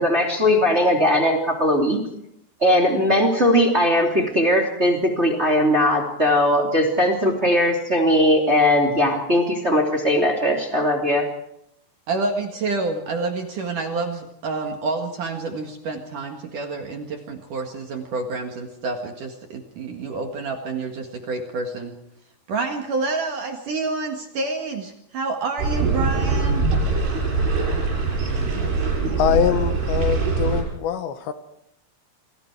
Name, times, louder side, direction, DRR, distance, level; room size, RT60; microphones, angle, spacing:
voice 1, 0.0-2.0 2.6-11.3, left 1 dB, 20° right, 1 dB, 2.3 m, -19 dB
voice 2, 12.1-21.9 22.5-26.6, right 3 dB, 55° right, 4 dB, 2.7 m, -28 dB
sound 1, 25.6-30.6, right 3 dB, 85° right, 8.7 m, -22 dB
voice 3, 29.2-31.3, left 9 dB, 75° left, 9 dB, 3.3 m, -23 dB
28.5 x 22.5 x 4.8 m, 0.75 s
omnidirectional pair, 5.5 m